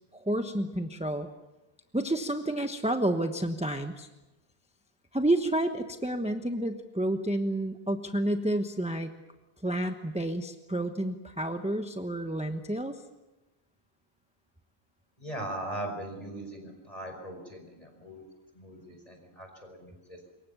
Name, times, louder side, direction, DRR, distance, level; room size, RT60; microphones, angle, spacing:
voice 1, 0.1-1.3 1.9-4.1 5.1-9.1 9.6-13.0, right 1 dB, 5° right, 6 dB, 1.0 m, -30 dB
voice 2, 15.2-18.2 18.5-20.2, right 1 dB, 35° left, 4 dB, 5.4 m, -40 dB
26.5 x 23.0 x 7.1 m, 1.1 s
omnidirectional pair, 1.1 m